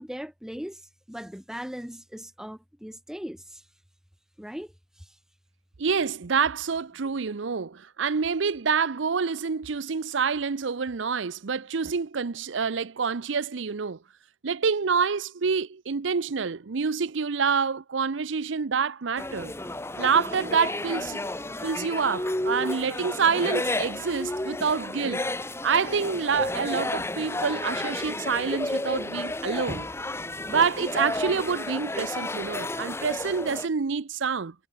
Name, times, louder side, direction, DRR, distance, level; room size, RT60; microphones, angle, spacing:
voice 1, 0.0-3.6 4.4-5.2, equal, 5° right, 0.7 m, -39 dB
voice 2, 5.8-14.0 14.4-19.5 20.0-21.2 21.6-25.2 25.6-29.9 30.5-34.5, right 5 dB, 75° right, 0.7 m, -27 dB
sound 1, 19.2-33.7, left 2 dB, 15° left, 1.3 m, -32 dB
head